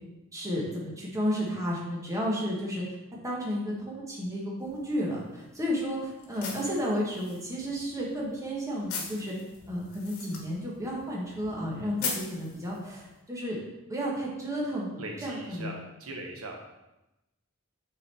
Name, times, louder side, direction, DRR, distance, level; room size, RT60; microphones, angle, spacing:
voice 1, 0.3-2.9 3.2-9.3 9.7-13.6 13.9-15.7, equal, 15° right, -4 dB, 1.3 m, -32 dB
sound 1, 4.6-13.2, left 5 dB, 75° left, 1.3 m, -42 dB
voice 2, 15.0-16.6, right 2 dB, 80° right, 1 dB, 1.0 m, -40 dB
6.3 x 4.0 x 4.2 m, 0.97 s
head